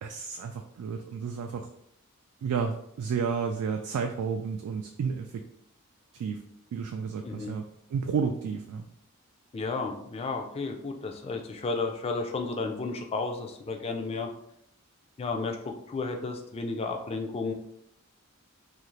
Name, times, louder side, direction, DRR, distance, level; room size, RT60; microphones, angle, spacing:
voice 1, 0.0-1.7 2.4-5.4 6.1-6.4 6.7-7.6 7.9-8.9, right 6 dB, 85° right, 5 dB, 0.3 m, -31 dB
voice 2, 9.5-14.3 15.2-17.5, left 3 dB, 25° left, 3 dB, 0.3 m, -32 dB
2.8 x 2.5 x 3.1 m, 0.74 s
head